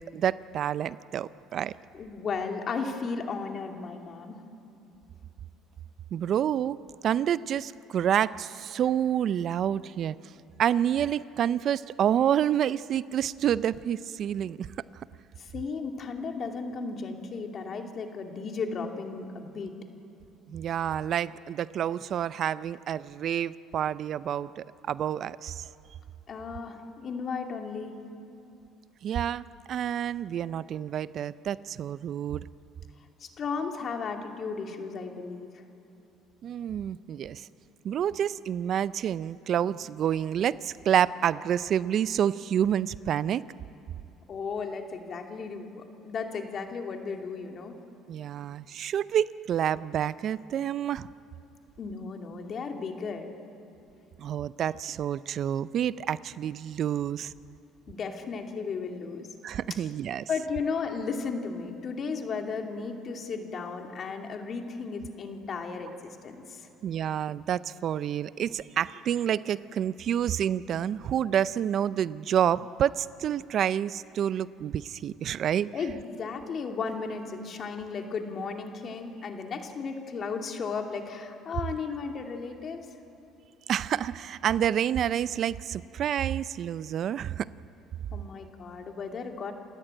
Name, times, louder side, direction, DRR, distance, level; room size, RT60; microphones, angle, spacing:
voice 1, 0.0-1.7 6.1-6.8 7.0-10.2 10.6-14.7 20.5-25.7 29.0-32.5 36.4-37.5 37.8-43.4 48.1-51.1 54.2-57.3 59.4-60.3 66.8-75.7 83.7-87.5, right 9 dB, 55° right, 18 dB, 0.4 m, -28 dB
voice 2, 1.9-4.4 15.4-19.7 26.3-27.9 33.2-35.5 44.3-47.8 51.8-53.3 57.9-59.3 60.3-66.7 75.7-82.8 88.1-89.5, left 5 dB, 45° left, 4 dB, 2.5 m, -35 dB
28.0 x 14.0 x 9.0 m, 2.7 s
supercardioid pair, 90°, 0 cm